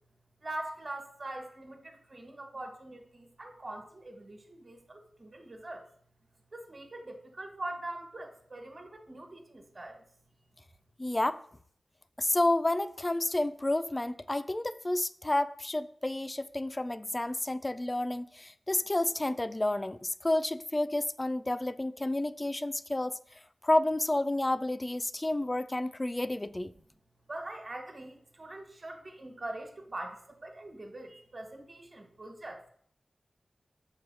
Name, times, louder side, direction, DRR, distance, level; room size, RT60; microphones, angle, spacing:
voice 1, 0.4-5.8 6.5-10.0 27.3-32.7, right 1 dB, 40° right, 1.4 m, -43 dB
voice 2, 11.0-11.4 12.2-23.2 23.6-26.7, left 1 dB, 20° left, 0.3 m, -30 dB
6.9 x 4.8 x 6.0 m
wide cardioid pair, 100°, 0 cm